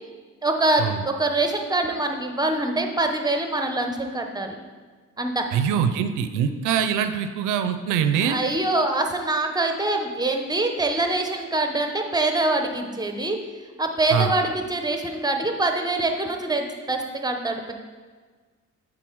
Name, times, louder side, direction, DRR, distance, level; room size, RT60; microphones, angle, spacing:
voice 1, 0.4-4.6 5.2-5.5 8.2-13.4 13.8-17.7, right 2 dB, 15° right, 4 dB, 0.8 m, -24 dB
voice 2, 5.5-8.4 14.1-14.3, right 8 dB, 85° right, 9 dB, 0.5 m, -23 dB
7.6 x 3.8 x 4.6 m, 1.5 s
cardioid pair, 90°, 30 cm